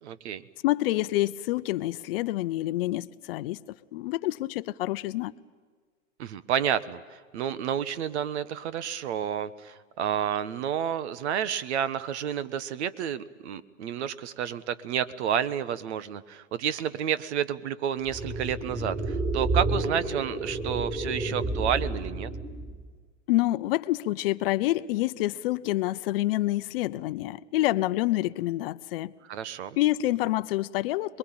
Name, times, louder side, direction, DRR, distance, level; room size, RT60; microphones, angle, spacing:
voice 1, 0.0-0.4 6.2-22.3 29.3-29.8, right 9 dB, 55° right, 16 dB, 1.4 m, -30 dB
voice 2, 0.6-3.6 3.9-5.3 23.3-29.1 29.8-31.2, left 16 dB, 45° left, 14 dB, 0.8 m, -27 dB
sound 1, 18.0-22.9, right 2 dB, 15° right, 5.9 m, -30 dB
26.0 x 22.0 x 8.8 m, 1.5 s
hypercardioid pair, 120°, 39 cm